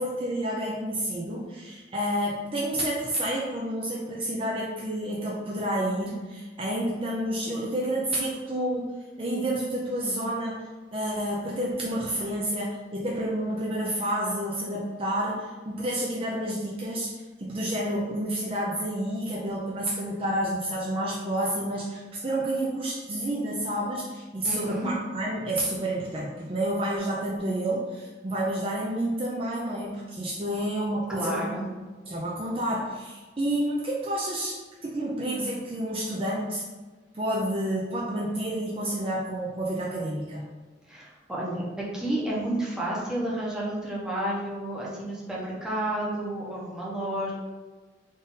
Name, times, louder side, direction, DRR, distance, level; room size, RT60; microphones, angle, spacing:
voice 1, 0.0-8.9 9.2-31.5 32.1-36.6 37.1-40.4, right 1 dB, 35° right, -4 dB, 0.5 m, -29 dB
voice 2, 24.5-24.9 31.1-31.7 40.9-41.6 41.9-47.3, right 1 dB, 5° right, -6 dB, 0.9 m, -31 dB
3.8 x 2.5 x 3.9 m, 1.3 s
head